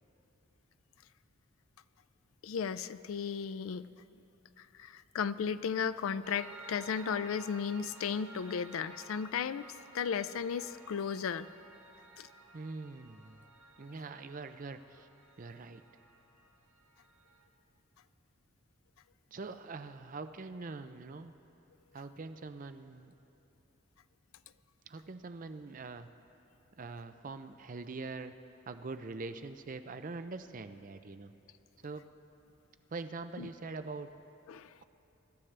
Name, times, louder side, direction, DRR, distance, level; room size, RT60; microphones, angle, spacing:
voice 1, 2.4-3.9 4.8-9.7 9.9-11.5 12.2-12.3 33.4-33.5 34.5-34.7, left 6 dB, 80° left, 14 dB, 0.4 m, -35 dB
Piano, 6.2-17.5, right 2 dB, 80° right, 1.3 m, -54 dB
voice 2, 12.5-13.5 13.8-15.1 15.4-15.8 19.3-21.3 21.9-23.1 24.9-26.1 26.8-28.3 28.7-31.3 31.8-32.0 32.9-34.1, right 3 dB, 40° right, 9 dB, 0.5 m, -43 dB
24.5 x 13.0 x 3.3 m, 2.9 s
head